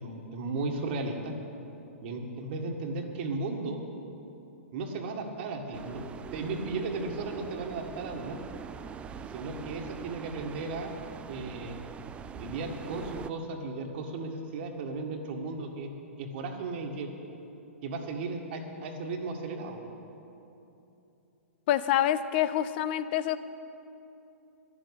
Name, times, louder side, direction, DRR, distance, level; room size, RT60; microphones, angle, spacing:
voice 1, 0.0-1.3 2.0-3.8 4.7-6.0 6.3-8.4 9.3-11.0 11.3-11.8 12.3-15.9 16.2-17.1 17.8-19.8, right 3 dB, 50° right, 3 dB, 1.6 m, -35 dB
sound 1, 5.7-13.3, right 7 dB, 15° right, 0.3 m, -43 dB
voice 2, 21.7-23.4, left 11 dB, 45° left, 13 dB, 0.6 m, -26 dB
11.0 x 7.4 x 9.9 m, 2.9 s
hypercardioid pair, 120°, 7 cm